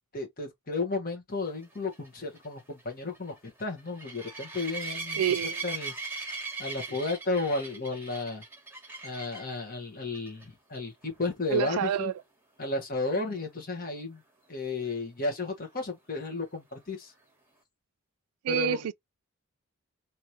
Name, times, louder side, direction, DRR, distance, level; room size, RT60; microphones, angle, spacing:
voice 1, 0.1-6.3 6.6-8.4 9.0-12.1 12.6-14.2 14.5-17.1 18.5-18.9, left 3 dB, 40° left, 1.4 m, -33 dB
sound 1, 1.6-9.6 10.1-10.4 10.7-10.8 11.2-11.3 14.9-15.0, right 4 dB, 10° right, 2.3 m, -39 dB
voice 2, 5.2-5.6 11.5-12.1 18.4-18.9, right 10 dB, 85° right, 0.3 m, -28 dB
4.8 x 3.1 x 2.9 m
head